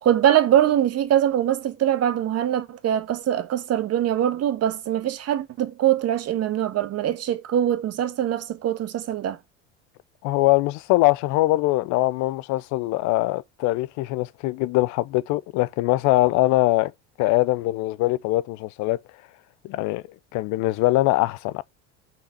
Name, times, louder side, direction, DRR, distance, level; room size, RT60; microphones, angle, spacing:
voice 1, 0.0-9.4, right 11 dB, 45° right, 1.4 m, -23 dB
voice 2, 10.2-16.9 17.2-19.0 19.6-20.0 20.3-21.6, left 18 dB, 55° left, 0.6 m, -22 dB
5.9 x 5.6 x 7.0 m
hypercardioid pair, 75°, 36 cm